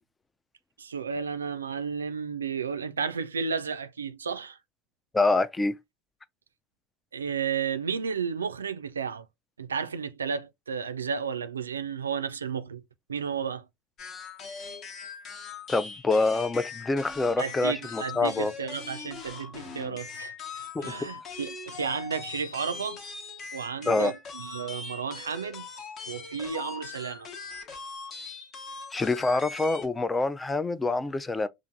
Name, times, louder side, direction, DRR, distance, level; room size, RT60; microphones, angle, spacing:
voice 1, 0.8-4.6 7.1-9.3 9.6-12.8 13.1-13.6 17.4-23.0 23.5-25.7 26.1-27.3, right 6 dB, 85° right, 0.3 m, -33 dB
voice 2, 5.1-5.8 15.7-18.5 20.7-21.1 23.9-24.1 28.9-31.5, left 3 dB, 15° left, 0.4 m, -26 dB
sound 1, 14.0-29.9, left 5 dB, 45° left, 1.0 m, -41 dB
5.6 x 2.4 x 2.5 m
hypercardioid pair, 75°, 0 cm